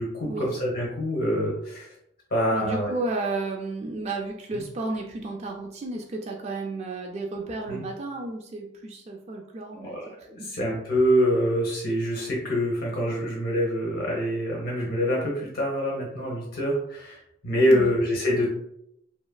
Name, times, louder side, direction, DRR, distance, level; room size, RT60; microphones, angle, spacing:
voice 1, 0.0-1.9 2.3-2.9 4.5-4.6 7.7-7.8 9.8-18.5, equal, 55° left, -3 dB, 0.8 m, -25 dB
voice 2, 2.5-10.5 17.7-18.0, right 2 dB, 35° right, 1 dB, 0.3 m, -33 dB
2.9 x 2.4 x 2.2 m, 0.76 s
head